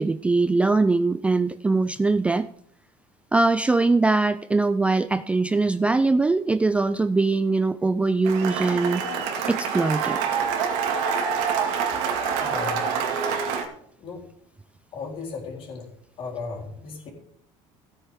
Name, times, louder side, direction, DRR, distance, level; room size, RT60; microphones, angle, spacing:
voice 1, 0.0-2.5 3.3-10.2, right 3 dB, 10° right, 12 dB, 0.3 m, -22 dB
Cheering / Applause, 8.3-13.7, right 6 dB, 80° right, 2.3 m, -26 dB
voice 2, 12.4-12.8 14.0-14.2 14.9-15.9 16.2-17.1, left 4 dB, 45° left, -1 dB, 3.9 m, -35 dB
16.5 x 8.8 x 3.6 m, 0.69 s
cardioid pair, 130°, 13 cm